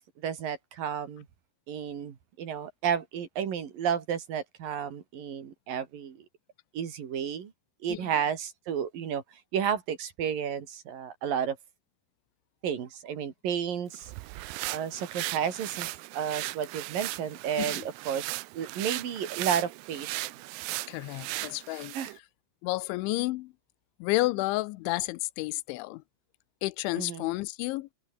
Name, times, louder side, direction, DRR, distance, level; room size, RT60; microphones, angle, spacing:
voice 1, 0.2-1.3 1.7-6.2 6.7-7.5 7.8-9.2 9.5-11.6 12.6-14.1 14.7-18.3 18.5-20.3 21.9-22.1 27.0-27.2, right 8 dB, 50° right, 3.8 m, -32 dB
sound 1, 13.9-22.2, right 20 dB, 85° right, 2.4 m, -37 dB
voice 2, 17.6-17.9 20.9-22.0 22.6-23.5 24.0-26.0 26.6-27.9, left 20 dB, 85° left, 3.0 m, -31 dB
omnidirectional pair, 5.5 m